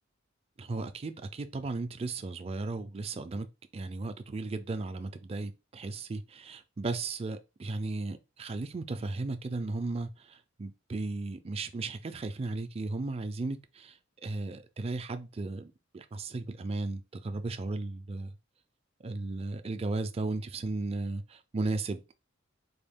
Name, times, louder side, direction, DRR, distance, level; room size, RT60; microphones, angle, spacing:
voice 1, 0.6-3.5 3.7-14.0 14.2-18.3 19.0-22.2, right 3 dB, 30° right, 0.4 m, -35 dB
4.1 x 2.3 x 3.5 m
head